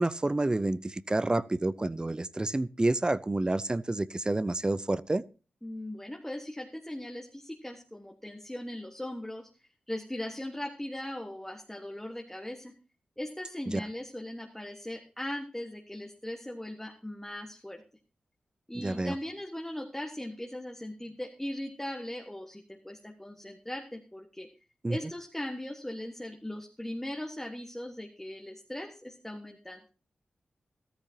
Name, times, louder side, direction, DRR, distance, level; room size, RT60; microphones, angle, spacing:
voice 1, 0.0-5.2 13.7-13.8 18.7-19.1 24.8-25.0, right 2 dB, 25° right, 0.6 m, -29 dB
voice 2, 5.6-9.5 9.9-12.7 13.2-17.8 18.7-24.5 24.9-29.8, left 1 dB, 10° left, 1.5 m, -39 dB
14.0 x 13.5 x 2.8 m
cardioid pair, 45°, 3 cm